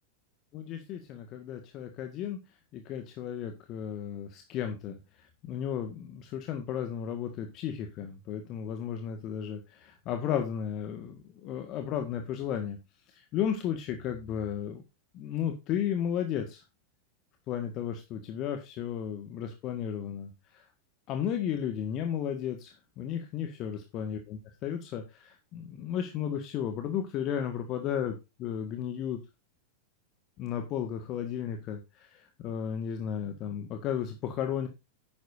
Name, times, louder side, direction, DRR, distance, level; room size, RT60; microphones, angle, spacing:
voice 1, 0.5-2.4 2.7-12.8 13.1-14.8 15.1-16.6 17.5-20.7 21.1-29.2 30.4-34.7, left 9 dB, 35° left, 6 dB, 1.7 m, -34 dB
11.5 x 9.6 x 2.7 m, 0.25 s
figure-of-eight pair, 90°, 0 cm